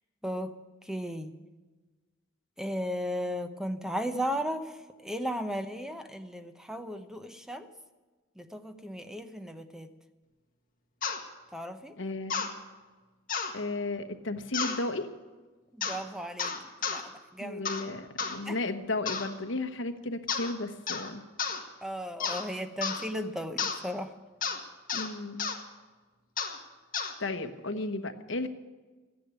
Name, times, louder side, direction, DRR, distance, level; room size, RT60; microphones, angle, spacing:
voice 1, 0.2-0.6 0.8-1.4 2.6-4.8 5.0-7.7 8.4-9.9 11.5-11.9 15.7-16.5 16.8-17.7 18.4-18.6 21.8-24.1, equal, 5° right, 9 dB, 0.8 m, -35 dB
sound 1, 11.0-11.2 12.3-12.5 13.3-13.5 14.5-14.8 15.8-16.0 16.4-17.0 17.7-17.9 18.2-18.4 19.1-19.3 20.3-20.5 20.9-21.1 21.4-21.6 22.2-22.5 22.8-23.0 23.6-23.8 24.4-24.6 24.9-25.1 25.4-25.6 26.4-26.6 26.9-27.1, left 5 dB, 45° left, 1.8 m, -32 dB
voice 2, 12.0-12.5 13.5-15.1 17.4-21.2 24.9-25.5 27.2-28.5, left 2 dB, 65° left, 7 dB, 1.1 m, -34 dB
14.5 x 10.0 x 9.8 m, 1.3 s
head